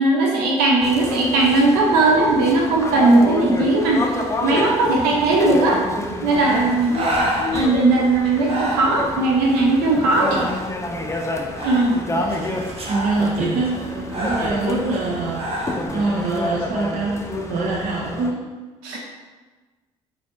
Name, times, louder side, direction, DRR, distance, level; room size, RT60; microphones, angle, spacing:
voice 1, 0.0-4.0 4.4-5.8 6.2-6.9 7.5-10.5 11.6-12.0 18.8-19.0, right 2 dB, 75° right, -2 dB, 1.0 m, -18 dB
sound 1, 0.8-18.3, left 2 dB, 20° left, 0.6 m, -29 dB
Breathing, 6.4-15.9, right 1 dB, 40° right, 1.0 m, -30 dB
voice 2, 12.1-12.6 12.9-17.2 17.5-18.5, right 3 dB, 55° right, -2 dB, 0.6 m, -25 dB
4.0 x 2.4 x 4.4 m, 1.3 s
hypercardioid pair, 55°, 16 cm